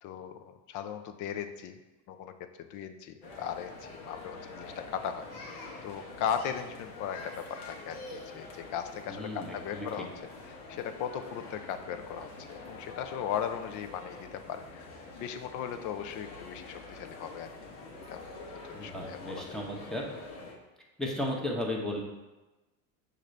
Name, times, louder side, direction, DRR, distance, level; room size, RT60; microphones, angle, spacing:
voice 1, 0.0-1.8 2.1-2.3 2.6-3.7 4.0-10.1 10.5-14.9 15.1-17.5 18.1-18.2 18.7-19.4, left 8 dB, 45° left, 8 dB, 0.4 m, -37 dB
sound 1, 3.2-20.5, left 3 dB, 70° left, 1.1 m, -46 dB
voice 2, 9.1-10.0 18.7-20.1 21.0-22.0, left 1 dB, ahead, -2 dB, 0.8 m, -35 dB
6.4 x 2.6 x 3.2 m, 1.1 s
supercardioid pair, 95°, 43 cm